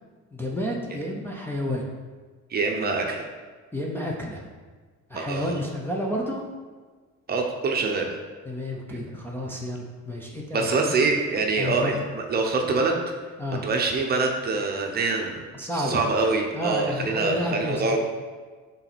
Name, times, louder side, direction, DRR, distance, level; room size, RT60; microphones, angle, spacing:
voice 1, 0.3-1.9 3.7-4.5 5.1-6.5 8.5-10.9 11.6-11.9 13.4-13.7 15.5-16.0 16.5-18.0, left 1 dB, 5° left, -2 dB, 0.6 m, -30 dB
voice 2, 2.5-3.3 5.1-5.6 7.3-8.1 10.5-13.0 13.6-15.4 15.7-18.0, right 3 dB, 30° right, 2 dB, 0.8 m, -25 dB
6.5 x 4.0 x 6.0 m, 1.4 s
cardioid pair, 170°, 30 cm